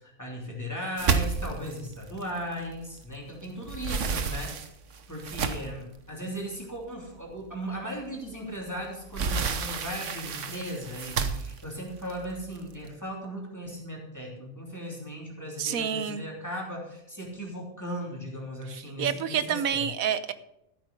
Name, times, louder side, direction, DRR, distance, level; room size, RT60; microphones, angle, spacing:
voice 1, 0.0-4.7 5.1-19.9, equal, 10° left, -2 dB, 3.0 m, -37 dB
sound 1, 1.0-3.2 3.5-5.9 6.5-6.6 7.1-7.2 8.6-12.9, right 5 dB, 65° right, 1.3 m, -31 dB
voice 2, 15.6-16.2 18.7-20.3, right 8 dB, 90° right, 13 dB, 1.3 m, -29 dB
13.5 x 8.8 x 5.3 m, 0.82 s
omnidirectional pair, 1.4 m